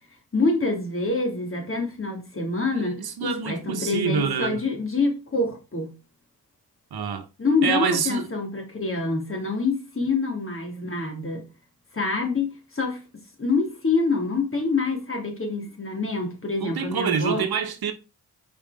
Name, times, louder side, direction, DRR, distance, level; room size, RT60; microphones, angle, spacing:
voice 1, 0.3-5.9 7.4-11.4 11.9-13.0 13.4-17.4, left 3 dB, 35° left, 2.9 m, -26 dB
voice 2, 2.7-4.6 6.9-7.3 7.6-8.3 16.6-17.9, right 7 dB, 70° right, 1.2 m, -26 dB
5.5 x 4.9 x 4.9 m
cardioid pair, 65°, 39 cm